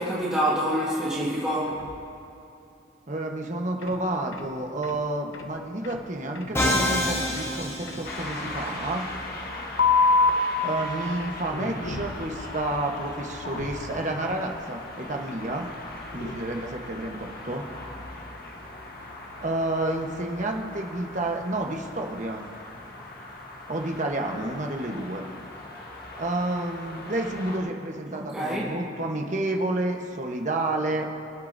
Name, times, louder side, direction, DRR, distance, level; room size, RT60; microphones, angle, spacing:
voice 1, 0.0-1.8 28.1-28.6, equal, 5° right, -8 dB, 1.5 m, -26 dB
sound 1, 1.7-2.1 3.8-4.0 4.3-4.5 4.8-5.0 5.3-5.5 5.8-6.0 6.3-6.5 6.9-7.1 7.4-7.6 7.9-8.1 8.4-8.6 9.8-10.3 11.4-15.0 16.0-16.3, left 4 dB, 80° left, 0.9 m, -28 dB
voice 2, 3.1-9.1 10.6-15.7 16.1-17.6 19.4-22.5 23.7-25.2 26.2-31.1, right 2 dB, 40° right, 2 dB, 1.1 m, -30 dB
Musical instrument, 6.5-8.6, left 1 dB, 15° left, 1.0 m, -26 dB
sound 2, 8.0-27.6, left 2 dB, 50° left, 1.5 m, -40 dB
25.0 x 9.3 x 2.7 m, 2.8 s
head